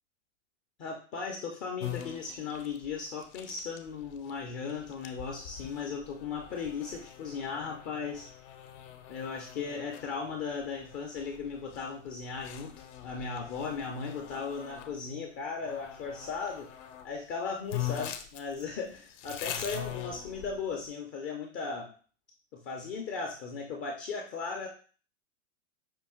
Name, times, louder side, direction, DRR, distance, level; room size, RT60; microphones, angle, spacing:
voice 1, 0.8-8.3 9.1-12.7 13.0-16.7 17.0-21.9 22.5-24.7, left 5 dB, 25° left, 0 dB, 0.4 m, -37 dB
sound 1, 1.8-15.0 15.6-17.1 17.4-17.5 17.7-20.8, left 12 dB, 60° left, 0.7 m, -43 dB
5.3 x 2.4 x 3.5 m, 0.40 s
hypercardioid pair, 130°, 40 cm